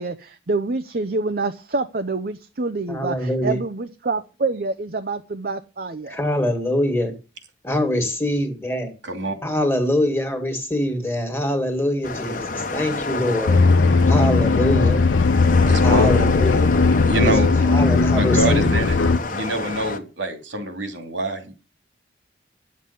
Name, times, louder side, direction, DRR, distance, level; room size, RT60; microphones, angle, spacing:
voice 1, 0.0-6.2, right 3 dB, 50° right, 0.7 m, -27 dB
voice 2, 2.9-3.6 6.1-7.2 7.6-8.9 9.4-13.6 14.1-15.0 15.8-16.7 17.2-18.9, left 1 dB, 15° left, 1.9 m, -24 dB
voice 3, 9.0-9.4 15.6-16.3 17.0-17.5 18.1-19.0 19.3-21.5, right 1 dB, 85° right, 2.7 m, -25 dB
sound 1, 12.0-20.0, left 3 dB, 45° left, 1.1 m, -29 dB
sound 2, 13.5-19.2, left 4 dB, 85° left, 0.6 m, -17 dB
9.9 x 7.5 x 6.9 m
head